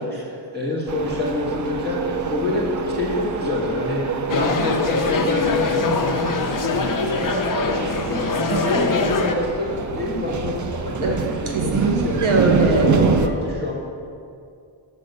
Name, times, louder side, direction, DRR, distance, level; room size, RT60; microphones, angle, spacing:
voice 1, 0.0-8.3 8.6-12.2 12.6-13.8, left 2 dB, 20° right, -5 dB, 1.7 m, -26 dB
sound 1, 0.9-13.3, right 5 dB, 40° right, 0.4 m, -26 dB
sound 2, 4.3-9.3, left 4 dB, 40° left, 0.6 m, -23 dB
voice 2, 11.7-12.9, right 4 dB, 75° right, 1 dB, 0.8 m, -21 dB
7.8 x 4.2 x 6.6 m, 2.4 s
wide cardioid pair, 130°, 49 cm